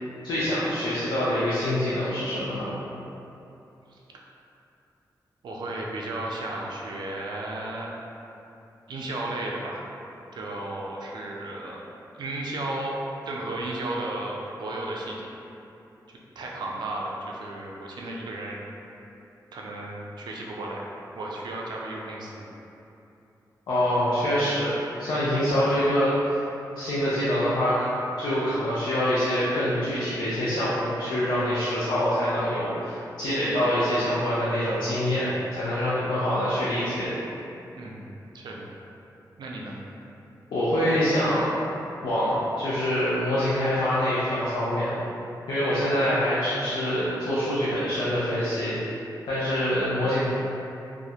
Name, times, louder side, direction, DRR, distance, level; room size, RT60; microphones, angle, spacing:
voice 1, 0.2-2.7 23.7-24.7 25.0-26.3 26.8-27.9 28.2-37.1 40.5-41.5 42.0-44.9 45.5-48.7 49.3-50.2, equal, 90° left, -10 dB, 0.4 m, -25 dB
voice 2, 5.4-7.9 8.9-9.8 10.3-11.8 12.1-12.9 13.3-15.3 16.4-18.6 19.5-20.9 21.1-22.5 37.8-38.0 38.3-38.7 39.4-39.8, right 2 dB, 80° right, -2 dB, 0.3 m, -34 dB
2.4 x 2.0 x 2.7 m, 2.8 s
cardioid pair, 75°, 7 cm